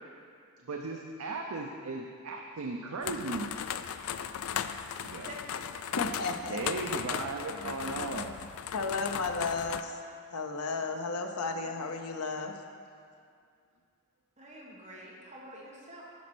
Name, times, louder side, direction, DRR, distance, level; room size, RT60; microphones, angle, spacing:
voice 1, 0.7-3.5 5.0-5.3 6.5-8.3, right 3 dB, 70° right, 1 dB, 0.6 m, -36 dB
sound 1, 3.0-9.8, left 8 dB, 65° left, 0.3 m, -37 dB
voice 2, 6.0-6.6 7.5-10.0 10.3-12.6, left 4 dB, 85° left, 5 dB, 0.8 m, -34 dB
voice 3, 14.4-16.0, right 1 dB, 30° right, -4 dB, 1.5 m, -47 dB
10.5 x 4.3 x 6.1 m, 2.3 s
head